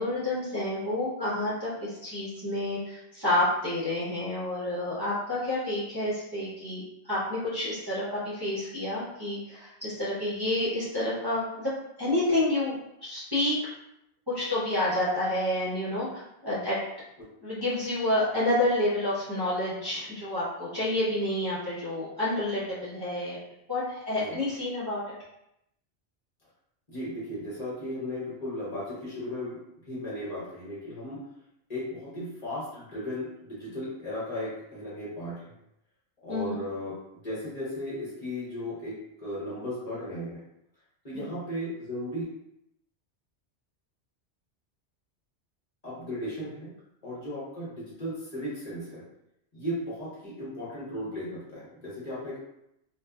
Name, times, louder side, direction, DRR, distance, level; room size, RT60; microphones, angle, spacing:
voice 1, 0.0-11.7 12.0-12.7 13.0-13.6 14.3-16.8 17.4-23.4 23.7-25.1 36.3-36.6, left 1 dB, 25° right, -11 dB, 0.6 m, -29 dB
voice 2, 26.9-29.6 29.9-31.2 31.7-35.5 36.2-37.0 37.2-38.9 39.2-40.4 41.0-42.3 45.8-46.7 47.0-49.0 49.5-52.4, left 1 dB, 40° left, -9 dB, 1.0 m, -36 dB
2.5 x 2.3 x 2.2 m, 0.81 s
omnidirectional pair, 1.1 m